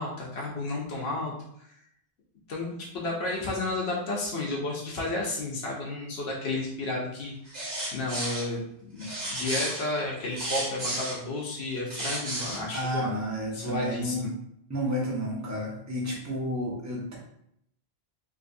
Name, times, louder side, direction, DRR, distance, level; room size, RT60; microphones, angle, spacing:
voice 1, 0.0-1.7 2.5-7.6 7.9-8.6 8.9-13.1 13.5-14.3, left 2 dB, 85° left, -3 dB, 1.0 m, -32 dB
sound 1, 7.5-8.5 9.0-11.2 11.7-12.6, right 1 dB, 45° right, 1.2 m, -33 dB
voice 2, 12.7-14.2 14.7-17.2, equal, 20° right, -3 dB, 0.7 m, -31 dB
3.6 x 2.6 x 2.5 m, 0.74 s
omnidirectional pair, 1.0 m